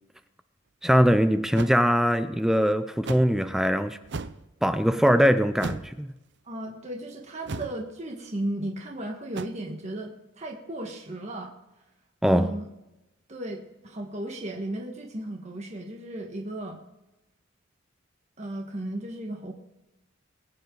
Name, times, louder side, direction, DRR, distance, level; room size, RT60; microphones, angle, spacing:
voice 1, 0.8-4.0 4.6-6.1 12.2-12.6, equal, ahead, 0.4 m, -22 dB
sound 1, 1.5-1.8 3.0-3.3 4.0-4.4 5.6-5.9 7.4-7.8 9.3-9.5, right 4 dB, 60° right, 0.6 m, -35 dB
voice 2, 6.4-11.5 12.2-12.7 13.3-16.8 18.4-19.5, right 1 dB, 35° right, 1.5 m, -35 dB
21.0 x 9.6 x 3.9 m
head